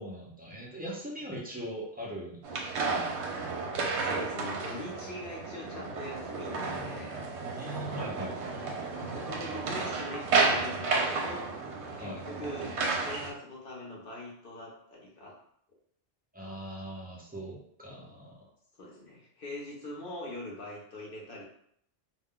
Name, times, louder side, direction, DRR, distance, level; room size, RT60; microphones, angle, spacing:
voice 1, 0.0-2.4 2.9-3.1 7.6-8.8 12.0-12.2 16.3-18.5, equal, 15° right, -4 dB, 0.3 m, -40 dB
sound 1, 2.4-13.3, right 4 dB, 75° right, 0.9 m, -32 dB
voice 2, 4.0-7.2 7.8-8.4 8.9-11.5 12.0-15.4 18.8-21.4, left 1 dB, 55° left, -3 dB, 0.8 m, -42 dB
2.3 x 2.1 x 3.6 m, 0.68 s
omnidirectional pair, 1.2 m